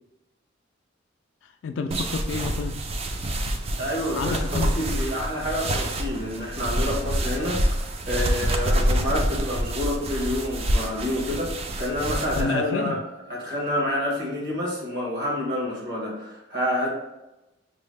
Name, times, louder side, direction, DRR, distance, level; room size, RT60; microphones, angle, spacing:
voice 1, 1.4-2.8 4.1-5.2 12.4-13.0, left 4 dB, 80° left, 7 dB, 0.3 m, -30 dB
sound 1, 1.9-12.4, right 1 dB, 30° right, 0.4 m, -27 dB
voice 2, 3.8-13.0 13.3-16.9, left 1 dB, 60° right, -3 dB, 1.5 m, -28 dB
6.0 x 2.1 x 3.3 m, 0.96 s
head